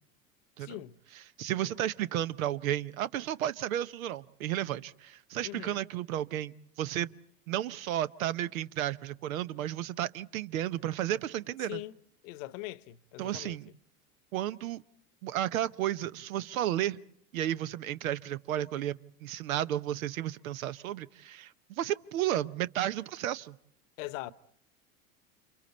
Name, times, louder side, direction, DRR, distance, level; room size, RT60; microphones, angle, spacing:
voice 1, 0.6-1.0 1.5-1.7 5.4-5.8 11.7-11.9 12.2-13.6 24.0-24.3, left 16 dB, 65° left, 1.0 m, -41 dB
voice 2, 1.4-7.1 7.5-11.8 13.2-13.7 14.3-14.8 15.2-17.0 17.3-23.6, right 12 dB, 80° right, 0.9 m, -33 dB
29.5 x 27.0 x 4.3 m
hypercardioid pair, 95°, 41 cm